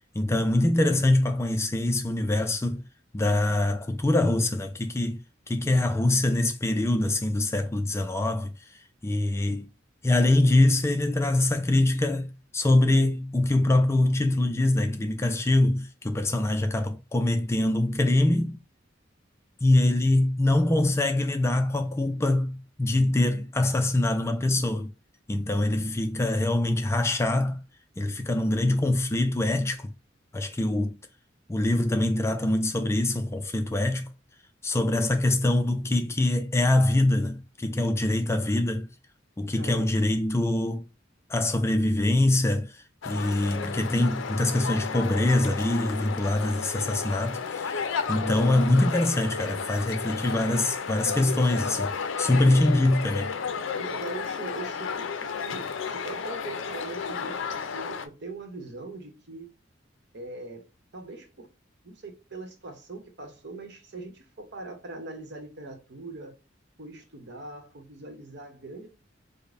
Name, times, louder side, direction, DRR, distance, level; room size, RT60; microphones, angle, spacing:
voice 1, 0.1-2.8 3.1-5.2 5.5-8.5 9.0-9.7 10.0-18.6 19.6-24.9 25.3-27.6 28.0-29.9 30.3-30.9 31.5-34.1 34.6-38.9 39.4-40.8 41.3-47.8 48.1-51.9 52.2-53.3, left 1 dB, 15° left, 0.3 m, -24 dB
voice 2, 39.5-40.2 52.3-52.7 53.8-59.5 60.1-60.6 60.9-61.5 61.8-66.3 66.8-68.9, right 2 dB, 60° right, 0.9 m, -41 dB
Walking from rain to consumption, 43.0-58.1, left 6 dB, 85° left, 0.4 m, -33 dB
5.0 x 2.1 x 2.5 m
head